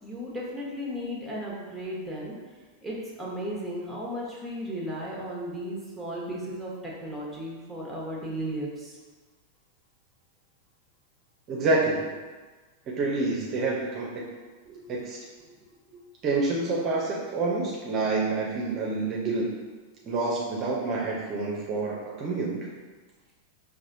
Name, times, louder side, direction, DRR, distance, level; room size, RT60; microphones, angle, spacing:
voice 1, 0.0-2.3 2.8-9.0 14.6-15.0 15.7-16.0 19.2-19.4 20.0-20.1, equal, ahead, -4 dB, 1.0 m, -35 dB
voice 2, 11.5-12.1 12.9-14.2 14.9-15.2 16.2-19.4 20.0-22.7, right 3 dB, 40° right, -3 dB, 0.6 m, -28 dB
4.1 x 2.5 x 2.6 m, 1.3 s
hypercardioid pair, 100°, 0 cm